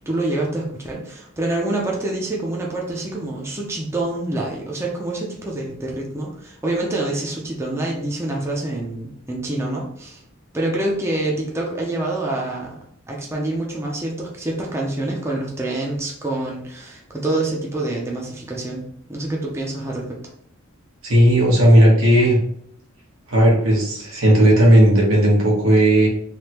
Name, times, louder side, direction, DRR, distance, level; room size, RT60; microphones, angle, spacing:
voice 1, 0.1-10.2 10.5-12.7 13.1-20.2, right 2 dB, 15° right, -2 dB, 0.5 m, -26 dB
voice 2, 21.0-22.4 23.3-26.1, right 1 dB, 85° right, -3 dB, 1.2 m, -14 dB
3.4 x 2.2 x 2.8 m, 0.66 s
head